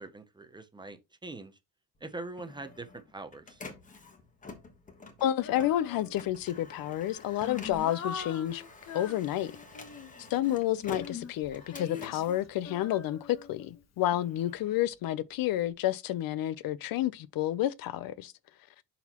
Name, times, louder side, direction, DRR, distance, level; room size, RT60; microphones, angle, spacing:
voice 1, 0.0-1.6 2.0-3.6, right 2 dB, 10° right, 0.6 m, -43 dB
Printer, 2.0-13.4 13.8-15.7, left 3 dB, 20° left, 1.2 m, -49 dB
voice 2, 5.2-8.6 8.9-9.5 10.3-18.3, left 13 dB, 65° left, 0.6 m, -30 dB
Female singing, 5.4-6.4 7.0-10.3 10.9-14.0, left 6 dB, 45° left, 1.1 m, -43 dB
11.5 x 4.1 x 2.9 m
cardioid pair, 175°, 38 cm